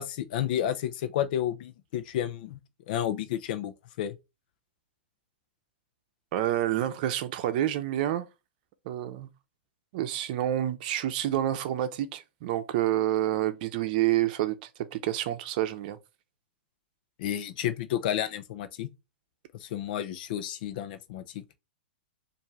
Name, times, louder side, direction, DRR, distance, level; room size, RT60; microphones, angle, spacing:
voice 1, 0.0-2.6 2.9-4.2 17.2-18.9 19.6-21.4, left 11 dB, 55° left, 0.7 m, -31 dB
voice 2, 6.3-8.3 8.9-9.3 9.9-16.0, right 13 dB, 50° right, 0.7 m, -28 dB
4.5 x 2.7 x 3.0 m
hypercardioid pair, 125°, 6 cm